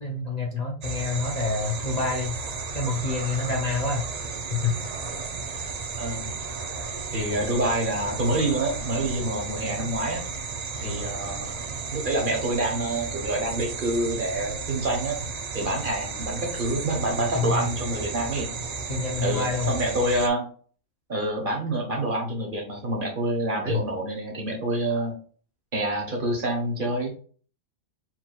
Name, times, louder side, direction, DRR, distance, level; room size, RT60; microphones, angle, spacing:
voice 1, 0.0-2.3 2.7-4.1 4.5-4.7 10.8-11.1 17.3-17.6 18.9-19.7 23.7-23.8, left 3 dB, 40° left, -1 dB, 0.7 m, -27 dB
sound 1, 0.8-20.3, right 4 dB, 75° right, 0.3 m, -34 dB
voice 2, 6.0-6.3 7.1-10.2 10.8-15.2 15.5-18.5 19.2-20.5 21.1-25.1 25.7-27.1, right 1 dB, 40° right, 1 dB, 1.2 m, -27 dB
4.6 x 3.9 x 2.3 m, 0.43 s
omnidirectional pair, 1.4 m